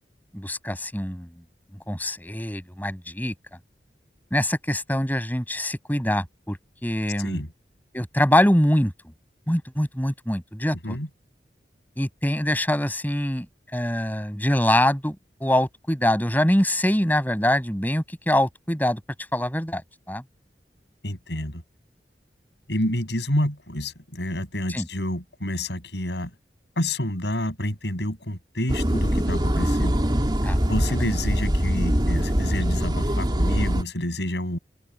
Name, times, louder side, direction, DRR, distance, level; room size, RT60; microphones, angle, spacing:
voice 1, 0.3-1.3 1.9-3.3 4.3-6.6 6.8-7.4 7.9-8.9 9.5-11.0 12.0-13.5 13.7-15.2 15.4-19.0 19.3-19.8 20.1-20.2 24.7-24.9 30.4-30.6, left 1 dB, 10° left, 6.9 m, -24 dB
voice 2, 21.0-21.6 22.7-26.3 26.8-29.9 30.6-34.6, left 1 dB, 75° left, 6.9 m, -28 dB
sound 1, 28.7-33.8, equal, 25° right, 2.9 m, -23 dB
open air
head